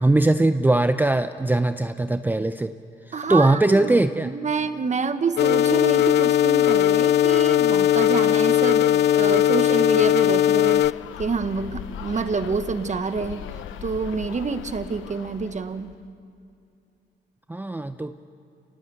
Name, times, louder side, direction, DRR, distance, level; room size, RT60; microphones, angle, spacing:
voice 1, 0.0-2.7 3.1-4.3 17.5-18.1, right 2 dB, 10° right, 10 dB, 0.6 m, -20 dB
voice 2, 3.1-4.0 4.2-10.8 11.2-13.4 13.8-15.9, right 4 dB, 35° right, 10 dB, 1.3 m, -27 dB
sound 1, 5.4-10.9, left 11 dB, 60° left, 0.5 m, -18 dB
sound 2, 10.7-16.0, left 9 dB, 85° left, 1.1 m, -38 dB
27.5 x 18.0 x 8.1 m, 2.5 s
cardioid pair, 90°, 20 cm